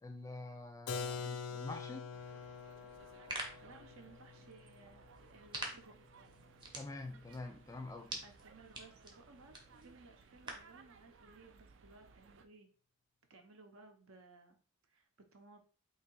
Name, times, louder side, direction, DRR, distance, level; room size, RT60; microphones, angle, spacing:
voice 1, 0.0-2.1 6.7-8.2, left 2 dB, 15° left, 0.3 m, -47 dB
Keyboard (musical), 0.9-6.5, left 5 dB, 85° left, 0.5 m, -46 dB
sound 1, 2.1-12.5, right 5 dB, 55° right, 0.4 m, -62 dB
sound 2, 2.9-10.8, right 2 dB, 20° right, 0.7 m, -49 dB
voice 2, 3.6-5.9 8.2-12.7 13.3-14.6 14.9-15.6, right 3 dB, 75° right, 0.8 m, -59 dB
3.2 x 2.9 x 4.6 m
head